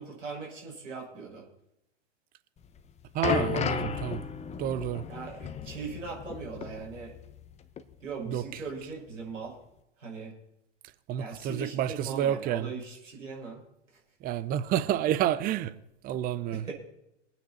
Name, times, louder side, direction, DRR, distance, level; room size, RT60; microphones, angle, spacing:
voice 1, 0.0-1.4 5.1-7.1 8.0-9.5 10.0-10.3 11.2-13.6 16.5-16.7, right 4 dB, 85° right, 6.1 m, -40 dB
sound 1, 2.6-7.5 7.8-7.9 8.7-8.8, left 7 dB, 15° left, 0.9 m, -34 dB
voice 2, 3.1-4.2 4.6-5.0 8.3-8.4 11.1-12.7 14.2-15.7 16.0-16.7, right 11 dB, 25° right, 0.7 m, -29 dB
22.5 x 9.3 x 4.3 m
hypercardioid pair, 110°, 37 cm